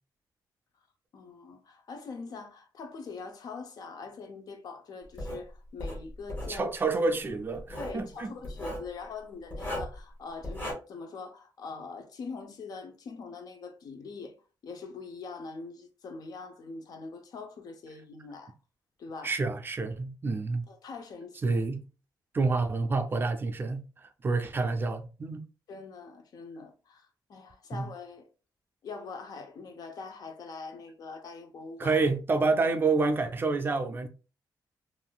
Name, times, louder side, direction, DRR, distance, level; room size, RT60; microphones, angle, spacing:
voice 1, 1.1-6.7 7.8-14.3 14.6-18.5 19.0-19.3 20.7-21.6 25.7-28.3 28.8-32.0, left 4 dB, 60° left, 0.6 m, -43 dB
Writing, 5.2-5.4 5.8-6.6 7.5-8.0 8.4-8.9 9.5-10.0 10.4-10.7, left 1 dB, 25° left, 1.2 m, -36 dB
voice 2, 6.5-8.3 19.2-20.6 21.4-21.8 22.3-25.4 27.7-27.9 31.8-34.1, right 3 dB, 30° right, 0.4 m, -28 dB
3.5 x 2.5 x 2.2 m
wide cardioid pair, 150°, 7 cm